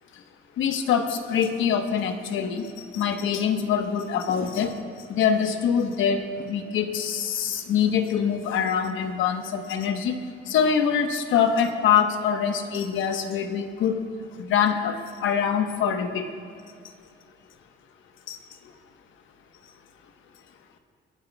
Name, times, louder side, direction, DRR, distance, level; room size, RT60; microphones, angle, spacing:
voice 1, 0.6-2.6 2.9-4.7 5.1-10.2 10.5-14.0 14.5-14.9 15.2-16.3 18.3-18.4, left 7 dB, 80° left, 6 dB, 1.1 m, -24 dB
23.5 x 12.5 x 2.3 m, 2.3 s
cardioid pair, 90°, 20 cm